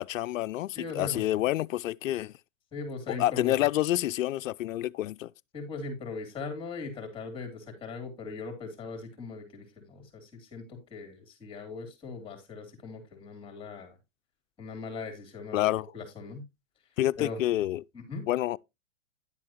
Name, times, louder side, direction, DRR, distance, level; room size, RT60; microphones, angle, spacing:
voice 1, 0.0-2.3 3.1-5.3 15.5-15.9 17.0-17.8 18.3-18.6, left 14 dB, 80° left, 0.5 m, -28 dB
voice 2, 0.7-1.2 2.7-3.5 5.5-14.0 14.6-16.4 17.2-17.4 17.9-18.3, left 4 dB, 15° left, 3.1 m, -39 dB
10.5 x 7.7 x 3.0 m
hypercardioid pair, 145°, 38 cm